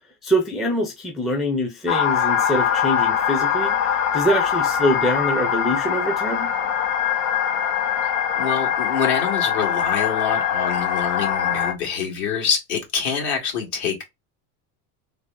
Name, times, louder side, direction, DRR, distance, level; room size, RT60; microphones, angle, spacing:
voice 1, 0.2-6.5, equal, ahead, 0.3 m, -24 dB
sound 1, 1.9-11.7, left 8 dB, 80° left, 1.0 m, -22 dB
voice 2, 8.4-14.0, left 7 dB, 60° left, 2.0 m, -25 dB
3.4 x 2.1 x 3.6 m
supercardioid pair, 135°, 45 cm